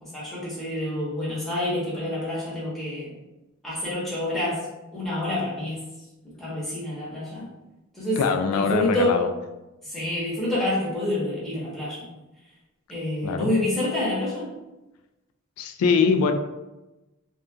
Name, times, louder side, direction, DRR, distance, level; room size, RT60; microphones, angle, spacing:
voice 1, 0.0-3.2 3.6-4.6 4.9-5.8 6.2-7.5 7.9-9.2 9.8-12.1 12.9-14.5, left 1 dB, ahead, -9 dB, 1.0 m, -28 dB
voice 2, 8.2-9.3 13.2-13.5 15.6-16.3, left 5 dB, 90° left, 6 dB, 0.3 m, -22 dB
2.7 x 2.4 x 2.2 m, 1.0 s
head